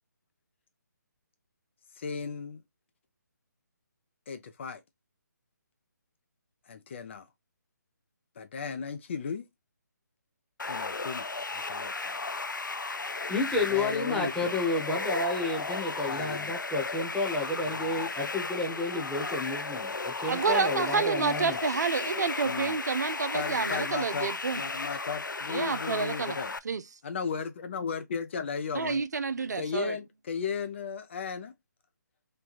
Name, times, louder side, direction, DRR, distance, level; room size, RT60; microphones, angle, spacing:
voice 1, 2.0-2.6 4.3-4.8 6.7-7.3 8.4-9.5 10.7-12.2 13.5-14.6 16.1-16.6 17.6-18.2 20.2-20.8 21.3-21.6 22.4-22.8 23.3-26.5 27.0-29.0 29.5-31.5, left 6 dB, 40° left, 0.6 m, -36 dB
sound 1, 10.6-26.6, left 3 dB, 90° left, 0.4 m, -35 dB
voice 2, 13.3-21.6, left 2 dB, 5° left, 1.1 m, -31 dB
voice 3, 20.3-24.6 25.5-26.4 26.7-26.8 28.8-29.9, right 5 dB, 65° right, 0.4 m, -29 dB
3.2 x 2.2 x 4.1 m
figure-of-eight pair, 145°, 10 cm